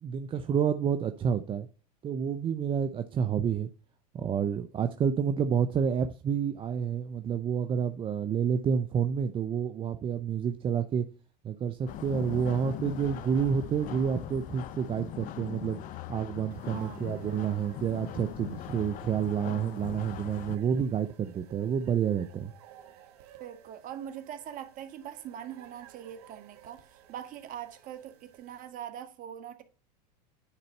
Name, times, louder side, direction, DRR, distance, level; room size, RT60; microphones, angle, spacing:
voice 1, 0.0-1.7 2.0-3.7 4.1-11.1 11.4-15.8 16.1-22.5, right 7 dB, 25° right, 0.6 m, -29 dB
sound 1, 11.9-20.6, left 12 dB, 40° left, 0.7 m, -41 dB
sound 2, 16.5-28.7, right 11 dB, 65° right, 1.5 m, -57 dB
voice 2, 16.6-17.2 23.4-29.6, right 10 dB, 40° right, 1.6 m, -42 dB
9.9 x 4.0 x 5.4 m
hypercardioid pair, 110°, 21 cm